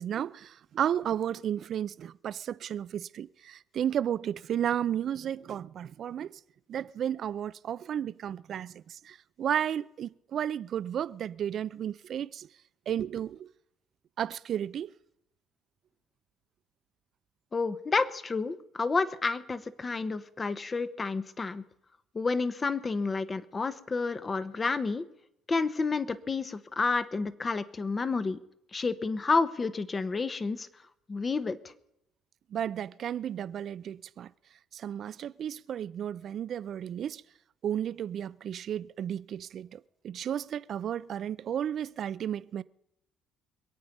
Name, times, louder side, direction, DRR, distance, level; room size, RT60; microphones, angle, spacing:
voice 1, 0.0-6.4 6.7-12.5 12.9-13.5 14.2-14.9 32.5-34.3 34.7-37.2 37.6-42.6, right 9 dB, 55° right, 0.5 m, -33 dB
voice 2, 17.5-21.6 22.1-25.0 25.5-28.4 28.7-30.7 31.1-31.6, left 4 dB, 30° left, 1.1 m, -30 dB
26.0 x 8.7 x 5.4 m
supercardioid pair, 90°, 0 cm